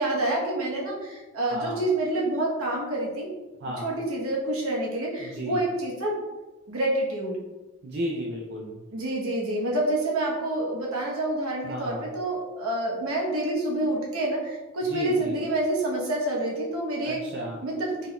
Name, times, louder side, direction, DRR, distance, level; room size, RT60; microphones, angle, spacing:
voice 1, 0.0-3.3 3.8-6.2 6.7-7.4 8.9-17.2 17.6-18.1, right 1 dB, 70° right, -3 dB, 1.0 m, -27 dB
voice 2, 1.5-1.8 3.6-4.0 5.2-5.7 7.8-8.8 11.6-12.1 14.8-15.4 17.0-17.6, equal, 50° right, -3 dB, 0.5 m, -34 dB
3.9 x 3.7 x 2.2 m, 1.1 s
head